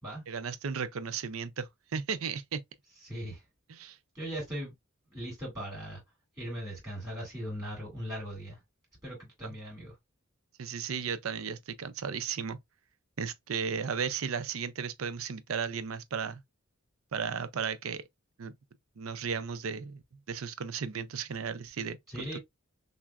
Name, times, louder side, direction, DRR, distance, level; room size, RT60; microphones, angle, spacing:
voice 1, 0.3-2.6 3.7-4.0 9.4-9.5 10.6-12.6 13.2-16.4 17.1-18.0 18.4-18.5 19.0-20.0 20.3-22.0, right 6 dB, 80° right, 0.5 m, -35 dB
voice 2, 3.0-3.4 4.1-4.7 5.1-6.0 6.4-8.6 9.0-9.9 22.1-22.4, equal, 15° right, 2.4 m, -39 dB
5.9 x 2.1 x 2.3 m
head